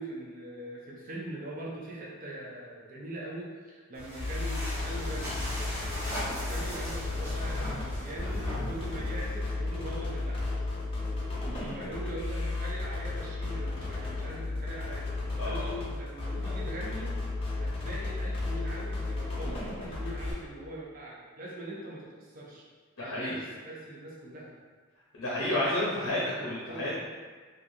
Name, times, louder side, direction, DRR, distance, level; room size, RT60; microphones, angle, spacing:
voice 1, 0.0-5.4 6.1-10.4 11.7-22.6 23.0-24.6 25.6-25.8 26.1-26.9, right 1 dB, 40° right, -5 dB, 0.6 m, -42 dB
sound 1, 3.9-9.5, equal, 10° right, 0.8 m, -38 dB
sound 2, 4.2-20.3, left 2 dB, 25° left, 0.4 m, -34 dB
voice 2, 15.4-15.7 23.0-23.4 25.1-27.0, left 1 dB, 75° left, -7 dB, 0.6 m, -31 dB
3.0 x 2.4 x 2.6 m, 1.5 s
head